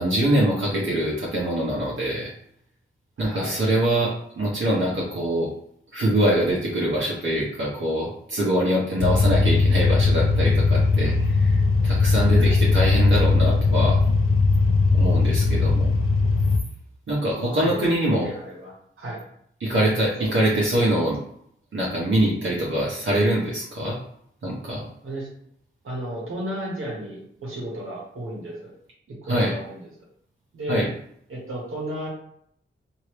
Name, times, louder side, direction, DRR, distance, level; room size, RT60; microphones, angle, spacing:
voice 1, 0.0-2.3 3.2-5.5 5.9-14.0 14.9-15.9 17.1-18.3 19.6-21.2 21.7-24.0 24.4-24.9 29.3-29.5 30.7-30.9, right 1 dB, 70° right, -5 dB, 0.9 m, -24 dB
voice 2, 3.2-3.6 9.0-9.2 12.4-12.6 15.0-15.4 17.4-19.2 19.9-20.3 25.0-25.3 25.8-28.7 29.3-29.9 30.5-30.9 31.3-32.1, right 1 dB, 90° right, -4 dB, 1.2 m, -34 dB
sound 1, 9.0-16.6, left 3 dB, 85° left, 0.4 m, -19 dB
3.2 x 2.7 x 3.0 m, 0.68 s
wide cardioid pair, 70°, 21 cm